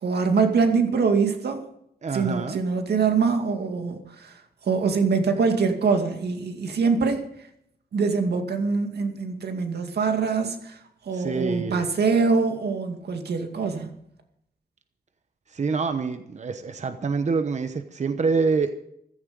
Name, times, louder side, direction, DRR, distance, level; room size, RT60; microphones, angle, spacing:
voice 1, 0.0-1.6 2.1-7.2 7.9-10.8 11.0-14.0, right 5 dB, 90° right, 2.3 m, -24 dB
voice 2, 2.0-2.6 11.1-11.8 15.5-18.8, right 4 dB, 45° right, 1.0 m, -26 dB
15.0 x 14.0 x 5.3 m
wide cardioid pair, 140°, 16 cm